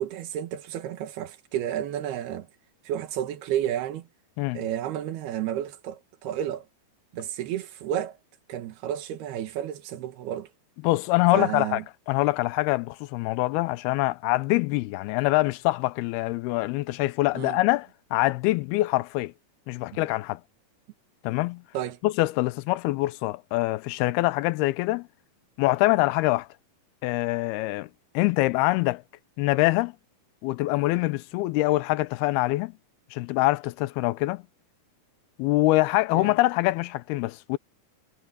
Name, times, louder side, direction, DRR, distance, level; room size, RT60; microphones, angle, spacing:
voice 1, 0.0-2.5 2.9-4.1 4.5-6.7 7.1-8.2 8.5-10.5 11.3-11.8 17.3-17.6 19.9-20.1 21.7-22.0 36.1-36.3, right 11 dB, 85° right, 3.4 m, -31 dB
voice 2, 10.8-11.8 12.1-19.3 19.7-20.4 21.2-21.6 22.0-25.1 25.6-26.5 27.0-27.9 28.1-29.0 29.4-29.9 30.4-32.7 33.1-34.4 35.4-37.6, left 19 dB, 85° left, 2.6 m, -24 dB
omnidirectional pair, 4.5 m